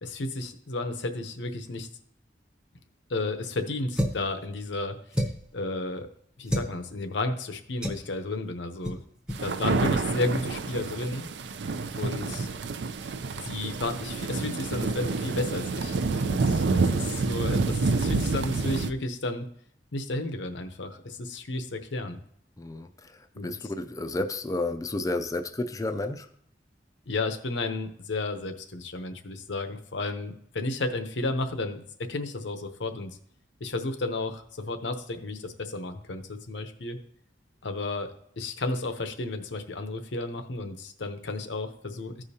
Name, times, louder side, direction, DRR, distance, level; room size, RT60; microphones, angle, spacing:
voice 1, 0.0-1.9 3.1-5.3 5.5-6.1 6.4-9.0 9.4-11.3 12.0-12.5 13.4-19.5 19.9-22.2 23.3-23.5 27.1-33.2 33.6-37.0 37.6-42.2, left 2 dB, 85° left, 7 dB, 0.8 m, -32 dB
sound 1, 3.9-4.3 5.1-5.5 6.5-6.7 7.8-8.1 8.8-9.0 9.3-9.4 9.8-10.0, equal, 5° right, 0.7 m, -29 dB
Rain and Thunder, 9.3-18.9, right 4 dB, 75° right, 0.4 m, -28 dB
voice 2, 22.6-26.3, left 2 dB, 20° left, 7 dB, 0.4 m, -32 dB
14.5 x 5.0 x 2.8 m, 0.65 s
head